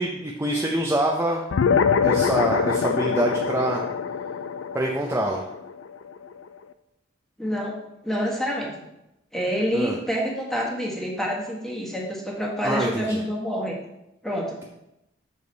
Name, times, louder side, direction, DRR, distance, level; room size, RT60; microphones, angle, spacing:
voice 1, 0.0-1.5 2.0-3.8 4.7-5.4 9.7-10.0 12.6-13.2, right 1 dB, 15° right, -1 dB, 0.6 m, -25 dB
sound 1, 1.5-6.3, left 6 dB, 75° left, 0.4 m, -24 dB
voice 2, 7.4-7.7 8.0-8.7 9.3-13.8 14.2-14.6, equal, ahead, -3 dB, 1.4 m, -27 dB
7.0 x 5.0 x 4.0 m, 0.88 s
head